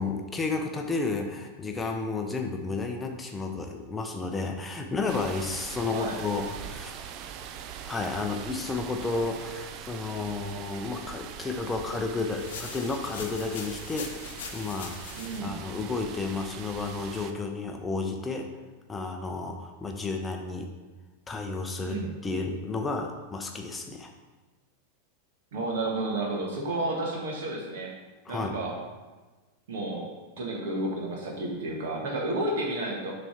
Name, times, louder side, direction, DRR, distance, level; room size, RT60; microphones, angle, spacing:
voice 1, 0.0-6.9 7.9-14.1 14.5-15.0 15.4-18.5 18.9-20.7 21.3-24.1 28.3-28.6, left 3 dB, 15° left, 3 dB, 0.6 m, -32 dB
sound 1, 5.1-17.3, right 8 dB, 40° right, 0.4 m, -42 dB
sound 2, 12.3-15.4, left 6 dB, 55° left, 0.8 m, -41 dB
voice 2, 15.1-15.5 21.8-22.1 25.5-27.9 28.3-28.7 29.7-30.1 30.4-33.1, right 2 dB, 55° right, -1 dB, 1.5 m, -31 dB
6.9 x 3.4 x 5.8 m, 1.2 s
figure-of-eight pair, 90°, 0 cm